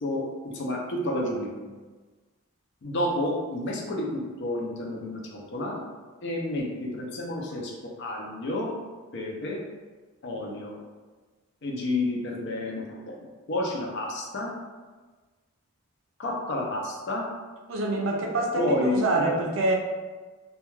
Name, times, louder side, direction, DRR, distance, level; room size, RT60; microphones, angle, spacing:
voice 1, 0.0-1.8 2.8-5.8 6.2-8.7 9.1-9.6 10.2-10.8 11.6-14.5 16.2-17.3 18.6-19.4, left 1 dB, 50° left, -2 dB, 0.5 m, -30 dB
voice 2, 17.7-19.7, right 2 dB, 60° right, 1 dB, 0.4 m, -26 dB
2.3 x 2.2 x 3.0 m, 1.3 s
head